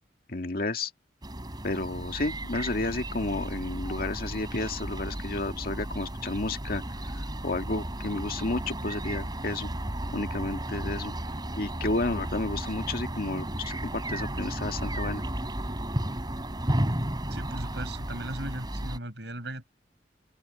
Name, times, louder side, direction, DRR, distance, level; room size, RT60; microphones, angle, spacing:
voice 1, 0.3-0.9 1.6-6.8 7.2-9.7 10.1-11.1 11.6-15.2, left 2 dB, 55° left, 1.9 m, -31 dB
sound 1, 1.2-19.0, right 1 dB, 25° right, 3.2 m, -34 dB
voice 2, 17.3-19.6, right 1 dB, 70° right, 7.6 m, -38 dB
open air
head